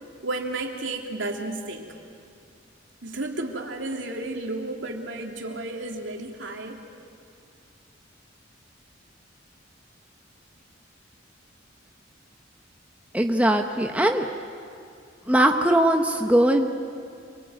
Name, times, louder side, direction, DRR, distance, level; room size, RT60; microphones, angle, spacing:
voice 1, 0.2-1.9 3.0-6.8, right 2 dB, 75° right, 1 dB, 3.0 m, -32 dB
voice 2, 13.1-14.3 15.3-16.7, right 1 dB, 5° right, 3 dB, 1.0 m, -20 dB
27.0 x 23.0 x 9.2 m, 2.4 s
head